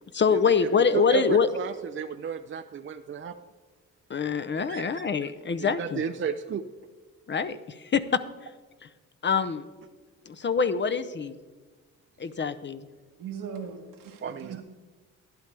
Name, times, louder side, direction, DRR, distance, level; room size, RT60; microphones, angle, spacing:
voice 1, 0.1-1.5 4.1-6.0 7.3-8.5 8.8-8.9 9.2-9.6 10.3-11.3 12.2-12.8, left 5 dB, 35° left, 11 dB, 0.6 m, -25 dB
voice 2, 0.9-3.3 4.7-5.1 5.6-6.6 14.2-14.6, right 7 dB, 35° right, 8 dB, 0.5 m, -33 dB
voice 3, 13.2-14.6, right 7 dB, 75° right, 4 dB, 1.4 m, -39 dB
11.5 x 11.0 x 3.4 m, 1.4 s
supercardioid pair, 60°, 34 cm